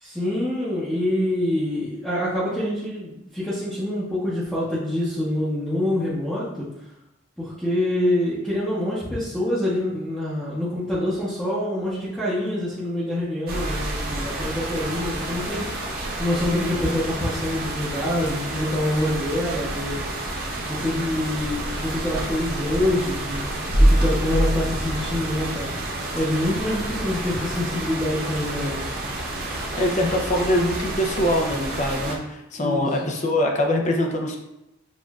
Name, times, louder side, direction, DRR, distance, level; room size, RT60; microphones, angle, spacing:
voice 1, 0.0-6.7 7.4-15.7 16.2-20.0 20.6-25.7 26.1-28.8 32.6-32.9, left 1 dB, 5° left, -11 dB, 0.8 m, -26 dB
sound 1, 13.5-32.2, right 1 dB, 45° right, 0.7 m, -27 dB
voice 2, 29.8-34.4, left 1 dB, 35° left, 2 dB, 0.5 m, -23 dB
6.3 x 2.5 x 2.3 m, 0.91 s
head